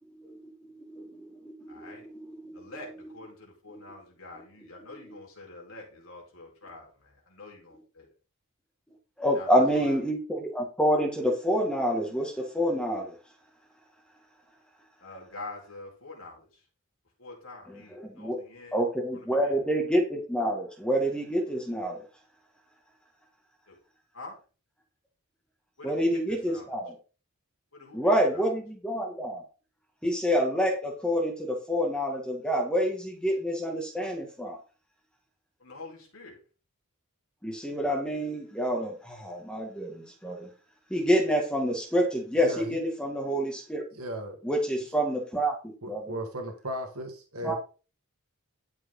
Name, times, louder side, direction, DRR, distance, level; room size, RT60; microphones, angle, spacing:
voice 1, 0.1-2.7 3.7-3.8 5.0-5.2 9.2-13.2 17.7-18.4 18.7-22.0 25.8-27.0 27.9-29.4 30.0-34.6 37.4-40.5 40.9-43.8 44.4-46.1 47.4-47.6, equal, 5° left, 1 dB, 2.1 m, -28 dB
voice 2, 1.7-2.1 2.5-8.1 9.3-10.0 15.0-16.4 17.2-18.8 19.1-19.5 23.7-23.8 24.1-24.4 25.8-26.7 27.7-28.5 35.6-36.4, left 2 dB, 65° left, -1 dB, 4.5 m, -46 dB
voice 3, 42.4-42.8 43.9-44.4 45.8-47.6, equal, 75° right, 3 dB, 1.9 m, -36 dB
12.5 x 7.0 x 3.9 m, 0.34 s
head